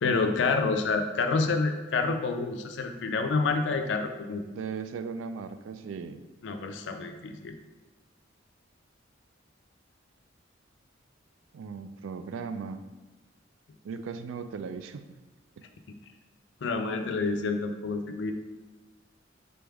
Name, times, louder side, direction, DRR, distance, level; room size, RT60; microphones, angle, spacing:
voice 1, 0.0-4.4 6.4-7.5 16.6-18.3, left 4 dB, 65° left, 6 dB, 0.4 m, -28 dB
voice 2, 4.6-6.2 11.5-12.8 13.8-15.1, right 5 dB, 80° right, 10 dB, 0.3 m, -37 dB
4.0 x 3.4 x 3.4 m, 1.2 s
head